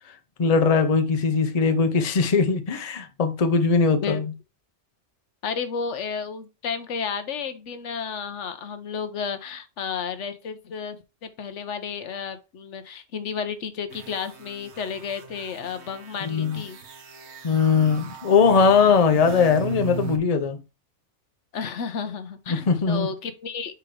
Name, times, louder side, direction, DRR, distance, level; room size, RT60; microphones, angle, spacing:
voice 1, 0.4-4.2 16.2-16.6 17.4-20.6 22.5-23.1, left 5 dB, 35° left, 0.8 m, -20 dB
voice 2, 5.4-16.8 21.5-23.8, left 6 dB, 80° left, 1.1 m, -32 dB
sound 1, 13.9-20.2, right 9 dB, 70° right, 1.2 m, -39 dB
5.1 x 4.5 x 4.7 m
omnidirectional pair, 1.2 m